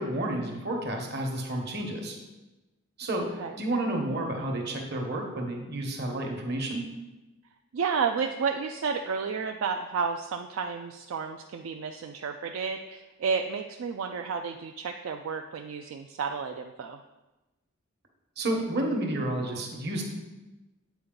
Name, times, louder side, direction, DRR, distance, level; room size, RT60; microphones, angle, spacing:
voice 1, 0.0-2.2 3.0-6.8 18.4-20.0, right 1 dB, 50° right, 2 dB, 1.1 m, -31 dB
voice 2, 7.7-17.0, right 5 dB, 70° right, 4 dB, 0.3 m, -31 dB
8.3 x 4.4 x 3.8 m, 1.1 s
head